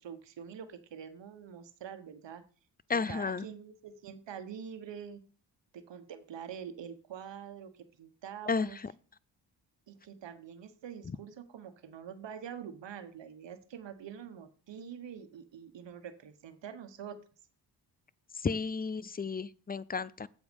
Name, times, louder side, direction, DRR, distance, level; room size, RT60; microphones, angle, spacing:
voice 1, 0.0-2.4 2.9-5.2 5.7-8.8 9.9-17.2, right 8 dB, 70° right, 10 dB, 1.3 m, -45 dB
voice 2, 2.9-3.4 8.5-8.7 18.4-20.3, left 5 dB, 20° left, 20 dB, 0.4 m, -32 dB
8.2 x 7.3 x 5.3 m, 0.39 s
cardioid pair, 75°, 45 cm